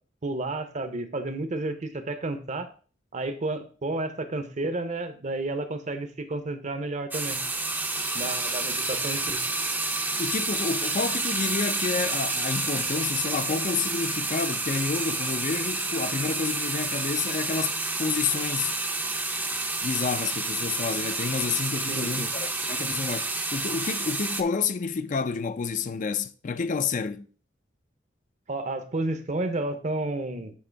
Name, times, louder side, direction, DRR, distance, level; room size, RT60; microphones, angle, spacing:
voice 1, 0.2-2.7 3.1-7.4 8.1-9.4 21.9-22.3 28.5-30.5, right 2 dB, 40° right, 0.7 m, -31 dB
sound 1, 7.1-24.4, right 2 dB, 10° right, 0.5 m, -29 dB
voice 2, 10.2-18.7 19.8-23.2 23.5-27.3, left 5 dB, 45° left, 0.4 m, -29 dB
8.5 x 3.0 x 4.5 m
head